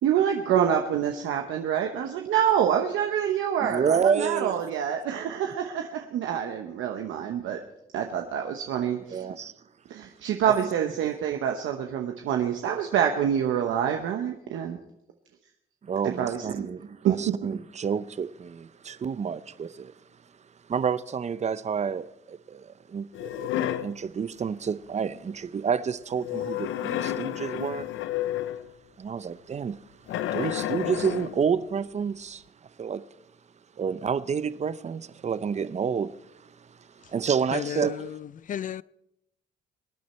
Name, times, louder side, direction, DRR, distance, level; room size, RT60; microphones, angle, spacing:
voice 1, 0.0-7.6 7.9-9.2 9.9-14.8 16.0-16.7 17.0-17.4, right 9 dB, 85° right, 1.1 m, -26 dB
voice 2, 3.6-4.5 9.1-9.5 15.8-19.9 20.7-23.5 23.8-27.9 29.0-29.8 30.3-32.4 32.8-33.0 33.8-36.1 37.1-37.9, right 6 dB, 35° right, 0.6 m, -29 dB
sound 1, 23.1-24.0 26.2-28.7 30.1-31.4, left 12 dB, 85° left, 0.6 m, -30 dB
voice 3, 37.5-38.2 38.5-38.8, left 10 dB, 40° left, 0.4 m, -33 dB
23.0 x 9.4 x 4.4 m
cardioid pair, 90°, 20 cm